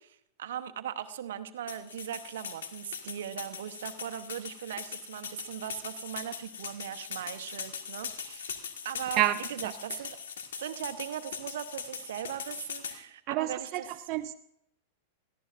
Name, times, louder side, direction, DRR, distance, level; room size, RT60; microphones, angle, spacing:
voice 1, 0.0-10.2 10.6-13.9, right 10 dB, 75° right, 9 dB, 0.9 m, -39 dB
sound 1, 1.7-13.0, left 7 dB, 80° left, 1.6 m, -41 dB
voice 2, 13.3-14.3, right 14 dB, 45° right, 9 dB, 0.5 m, -29 dB
18.0 x 14.5 x 2.5 m, 0.76 s
hypercardioid pair, 105°, 0 cm